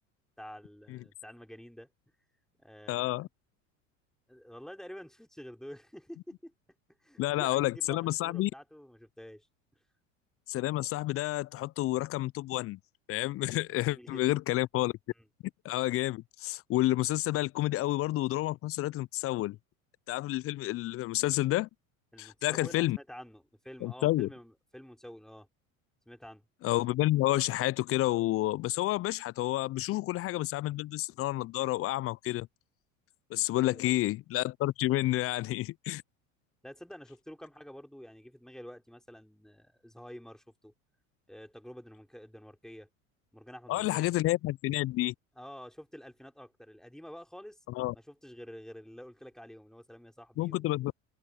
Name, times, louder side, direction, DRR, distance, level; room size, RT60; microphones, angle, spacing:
voice 1, 0.4-1.9 2.6-3.3 4.3-6.5 7.0-9.5 13.4-14.4 15.2-15.3 22.1-25.5 26.0-26.4 33.5-34.0 36.6-40.7 41.3-42.9 43.3-44.2 45.4-47.6 47.9-50.7, equal, ahead, 4.9 m, -49 dB
voice 2, 2.9-3.3 7.2-8.5 10.5-12.8 13.1-14.9 15.6-19.6 20.1-21.7 22.2-23.0 23.8-24.3 26.6-32.5 33.3-36.0 43.7-45.1 47.7-47.9 50.4-50.9, left 16 dB, 35° left, 0.5 m, -30 dB
hypercardioid pair, 85°, 40 cm